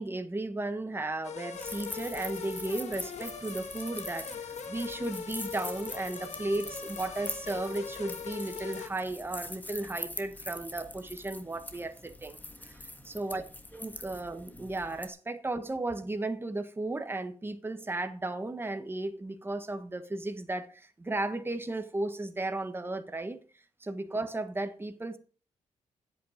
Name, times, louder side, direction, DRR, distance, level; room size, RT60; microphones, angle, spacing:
voice 1, 0.0-12.4 12.7-12.8 13.0-13.4 13.7-23.4 23.8-25.2, right 2 dB, 20° right, 1.4 m, -35 dB
sound 1, 1.2-8.9, left 6 dB, 65° left, 1.7 m, -41 dB
sound 2, 1.5-15.1, left 1 dB, 15° left, 1.5 m, -44 dB
9.9 x 8.3 x 5.1 m
cardioid pair, 80°, 12 cm